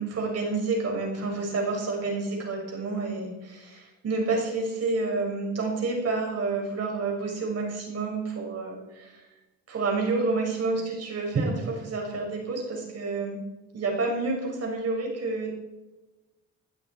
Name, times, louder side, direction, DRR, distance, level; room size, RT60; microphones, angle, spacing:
voice 1, 0.0-9.2 9.7-13.4 13.7-15.5, right 3 dB, 55° right, 0 dB, 6.3 m, -29 dB
20.0 x 12.0 x 4.7 m, 1.1 s
cardioid pair, 90°, 30 cm